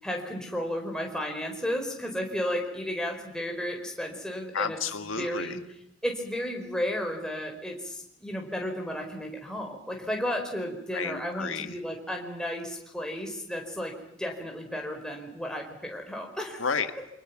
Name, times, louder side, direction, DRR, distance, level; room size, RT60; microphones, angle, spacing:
voice 1, 0.0-4.8 5.2-5.6 6.0-16.6, equal, 5° left, 1 dB, 4.6 m, -33 dB
voice 2, 4.5-5.6 10.9-11.8 16.6-17.1, left 5 dB, 85° left, 8 dB, 1.6 m, -32 dB
28.5 x 25.5 x 6.0 m, 0.81 s
head